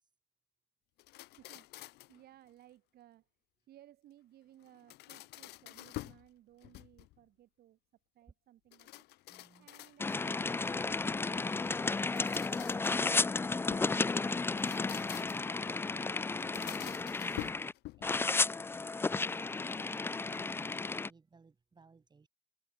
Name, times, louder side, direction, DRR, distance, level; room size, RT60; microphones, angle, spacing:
sound 1, 1.0-2.2 4.6-6.3 6.6-7.2 8.7-10.3 11.9-14.0 14.5-15.6 16.4-18.2, left 19 dB, 80° left, 0.6 m, -48 dB
voice 1, 1.4-1.7 2.1-3.3 3.7-7.8 8.1-11.3, right 13 dB, 65° right, 4.0 m, -61 dB
voice 2, 9.3-9.7 17.7-22.3, right 4 dB, 25° right, 6.2 m, -62 dB
sound 2, 10.0-17.7 18.0-21.1, left 3 dB, 15° left, 0.4 m, -33 dB
open air
cardioid pair, 110°, 17 cm